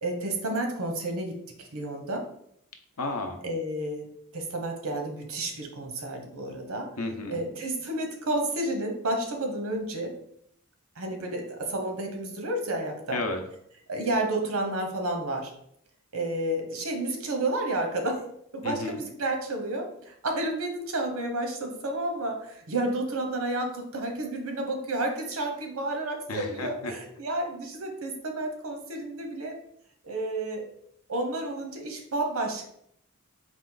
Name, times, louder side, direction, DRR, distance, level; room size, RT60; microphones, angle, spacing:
voice 1, 0.0-2.2 3.4-4.1 4.3-6.9 7.3-10.1 11.0-13.2 13.9-15.5 16.1-18.2 18.5-29.6 30.0-30.7 31.1-32.7, right 1 dB, 80° right, 4 dB, 0.9 m, -31 dB
voice 2, 3.0-3.4 7.0-7.4 13.1-13.4 18.6-19.0 26.3-26.9, left 2 dB, 90° left, 5 dB, 0.7 m, -32 dB
4.2 x 2.4 x 3.8 m, 0.70 s
head